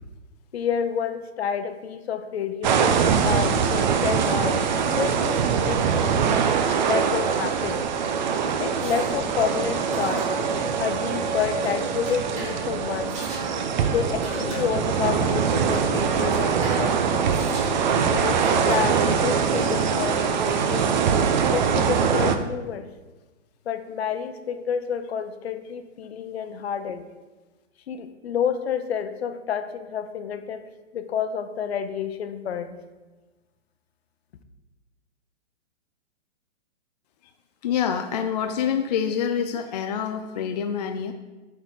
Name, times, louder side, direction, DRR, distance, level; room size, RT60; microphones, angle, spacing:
voice 1, 0.5-4.6 4.9-5.4 5.6-6.3 6.9-7.8 8.6-10.3 10.8-13.2 13.9-17.2 18.1-20.9 21.5-22.8 23.7-27.0 27.9-30.6 30.9-32.8, left 7 dB, 60° left, 8 dB, 0.9 m, -29 dB
sound 1, 2.6-22.4, right 6 dB, 40° right, 0.6 m, -23 dB
sound 2, 8.8-20.6, right 1 dB, 20° right, 1.4 m, -37 dB
voice 2, 37.6-41.1, left 8 dB, 35° left, 5 dB, 0.4 m, -26 dB
13.0 x 4.3 x 3.9 m, 1.2 s
hypercardioid pair, 130°, 36 cm